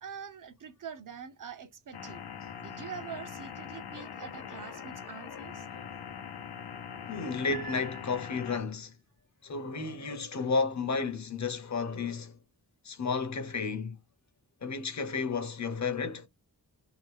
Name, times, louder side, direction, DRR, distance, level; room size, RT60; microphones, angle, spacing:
voice 1, 0.0-2.2 2.6-5.7, right 7 dB, 55° right, 0.7 m, -44 dB
sound 1, 1.9-8.6, left 7 dB, 85° left, 0.7 m, -42 dB
voice 2, 7.1-8.9 9.4-12.4 12.8-14.0 14.6-16.3, left 4 dB, 45° left, 0.8 m, -32 dB
Piano, 7.5-8.7, right 4 dB, 75° right, 1.0 m, -46 dB
2.9 x 2.1 x 3.2 m
wide cardioid pair, 110°, 38 cm